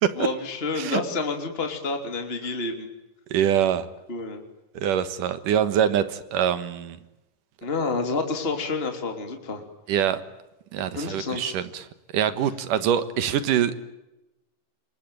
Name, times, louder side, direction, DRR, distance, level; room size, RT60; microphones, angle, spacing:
voice 1, 0.1-2.9 4.1-4.4 7.6-9.6 10.9-11.5, left 3 dB, 20° left, 5 dB, 3.0 m, -29 dB
voice 2, 3.3-3.9 4.7-7.0 9.9-10.2 10.7-11.9 12.1-13.8, right 9 dB, 85° right, 13 dB, 3.1 m, -24 dB
27.5 x 22.5 x 9.1 m, 0.97 s
omnidirectional pair, 3.7 m